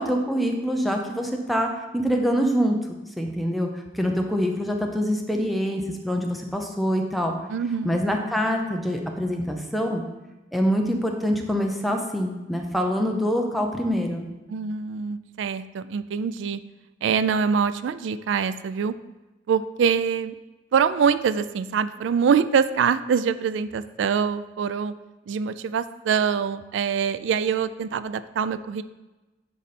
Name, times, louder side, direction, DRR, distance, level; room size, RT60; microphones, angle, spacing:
voice 1, 0.0-2.8 3.2-3.7 3.9-7.3 7.8-10.0 10.5-14.3, equal, ahead, 2 dB, 0.7 m, -25 dB
voice 2, 7.5-8.0 14.5-16.6 17.0-18.9 19.5-20.3 20.7-24.9 25.3-28.8, right 6 dB, 85° right, 14 dB, 0.3 m, -24 dB
9.4 x 4.0 x 4.2 m, 1.1 s
head